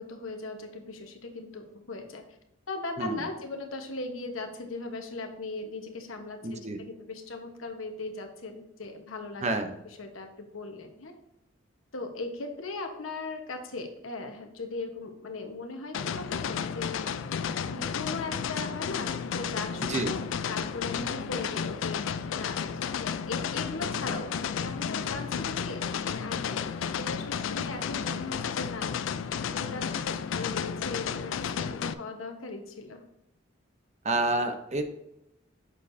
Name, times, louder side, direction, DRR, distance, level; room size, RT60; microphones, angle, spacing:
voice 1, 0.0-2.2 2.7-11.1 11.9-17.0 17.6-29.0 29.5-33.0, left 3 dB, 85° left, 5 dB, 1.1 m, -39 dB
voice 2, 6.4-6.8 9.4-9.7 19.9-20.1 34.0-34.8, right 2 dB, 35° right, 7 dB, 0.7 m, -28 dB
sound 1, 15.9-31.9, left 7 dB, 65° left, 0.4 m, -32 dB
7.4 x 6.4 x 2.7 m, 0.86 s
head